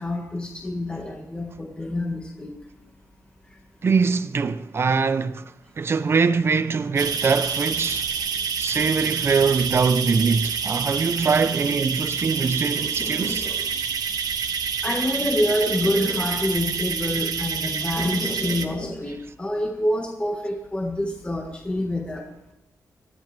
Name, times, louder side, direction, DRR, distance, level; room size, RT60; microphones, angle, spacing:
voice 1, 0.0-2.5 12.7-13.7 14.8-22.2, left 1 dB, 15° left, 1.7 m, -27 dB
voice 2, 3.8-5.4 5.8-8.1 8.6-13.5, right 5 dB, 40° right, 0.7 m, -22 dB
sound 1, 7.0-18.6, right 6 dB, 75° right, 1.3 m, -27 dB
21.5 x 13.5 x 3.4 m
wide cardioid pair, 155°, 7 cm